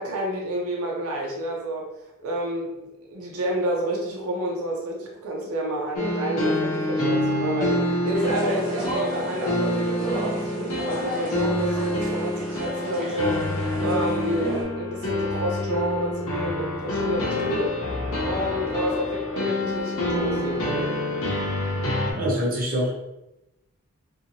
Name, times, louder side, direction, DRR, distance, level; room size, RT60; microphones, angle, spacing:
voice 1, 0.0-1.9 2.2-2.7 3.0-17.8 18.2-21.0, right 1 dB, 85° right, -1 dB, 0.6 m, -29 dB
sound 1, 6.0-22.1, left 1 dB, 80° left, 0.7 m, -27 dB
sound 2, 8.1-14.6, right 1 dB, 10° right, 1.4 m, -33 dB
voice 2, 22.1-22.9, equal, 40° right, -5 dB, 0.7 m, -24 dB
2.8 x 2.4 x 2.6 m, 0.93 s
head